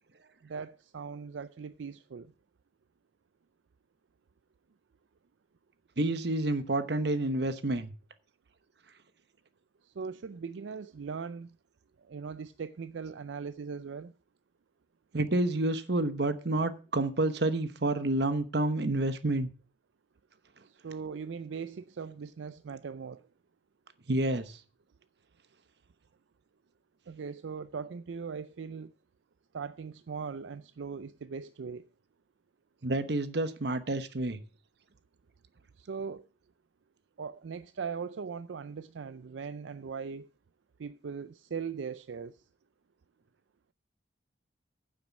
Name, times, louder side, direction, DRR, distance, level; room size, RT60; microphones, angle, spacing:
voice 1, 0.4-2.3 9.8-11.6 12.0-14.1 20.6-23.3 27.1-28.9 29.5-31.8 35.8-36.3 37.2-40.3 40.8-42.4, right 5 dB, 85° right, 0.4 m, -40 dB
voice 2, 6.0-7.9 15.1-19.5 24.1-24.6 32.8-34.4, right 2 dB, 65° right, 1.0 m, -29 dB
9.5 x 7.7 x 5.9 m
head